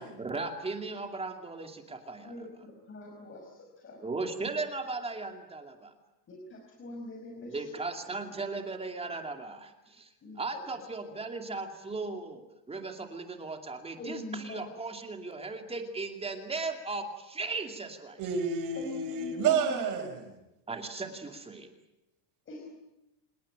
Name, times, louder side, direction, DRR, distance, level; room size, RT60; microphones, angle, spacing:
voice 1, 0.2-2.3 4.0-5.9 7.4-18.2 20.7-21.7, right 3 dB, 10° right, 2.6 m, -37 dB
voice 2, 2.2-4.0 6.3-7.8 10.2-10.6 14.0-14.7 18.7-19.9 22.5-22.8, left 1 dB, 25° left, 4.9 m, -43 dB
voice 3, 18.2-20.3, right 6 dB, 40° right, 5.7 m, -30 dB
26.5 x 21.5 x 8.9 m
cardioid pair, 165°, 50 cm